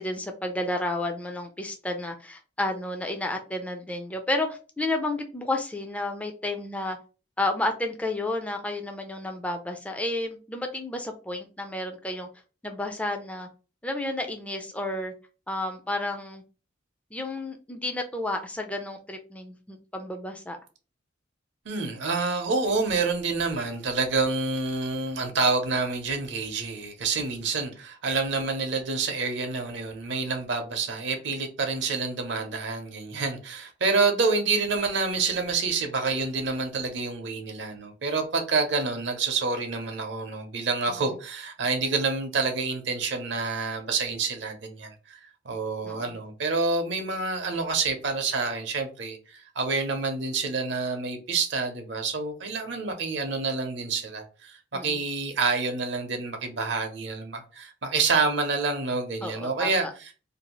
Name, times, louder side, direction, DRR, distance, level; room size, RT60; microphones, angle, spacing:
voice 1, 0.0-7.0 7.4-12.3 12.6-13.5 13.8-15.1 15.5-16.4 17.1-20.6 45.8-46.2 54.7-55.0 59.2-59.7, left 2 dB, 5° left, 0.3 m, -31 dB
voice 2, 21.7-60.1, right 4 dB, 70° right, 0.6 m, -28 dB
2.6 x 2.3 x 2.9 m
head